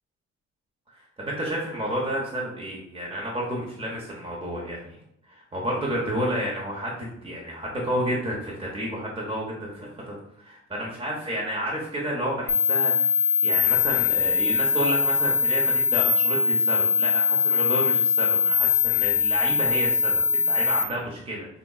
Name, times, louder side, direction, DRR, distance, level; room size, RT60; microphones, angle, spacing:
voice 1, 0.9-5.0 5.3-21.5, equal, 20° right, -3 dB, 0.8 m, -31 dB
sound 1, 12.5-20.8, left 6 dB, 50° left, 0.5 m, -22 dB
3.7 x 2.8 x 2.3 m, 0.73 s
cardioid pair, 90°, 30 cm